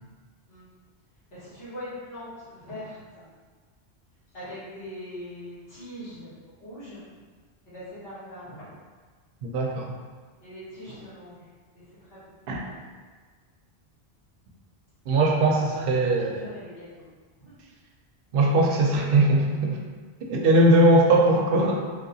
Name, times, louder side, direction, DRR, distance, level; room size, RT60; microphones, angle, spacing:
voice 1, 1.3-3.2 4.3-7.0 7.7-8.6 10.4-11.4 11.7-11.8 12.1-12.8 15.5-17.0 17.4-17.5, left 1 dB, 65° left, -14 dB, 1.6 m, -42 dB
voice 2, 9.4-9.9 12.5-12.6 15.1-16.4 18.3-19.8 20.2-21.8, right 1 dB, 65° right, -1 dB, 0.7 m, -20 dB
3.1 x 2.8 x 2.6 m, 1.5 s
omnidirectional pair, 1.1 m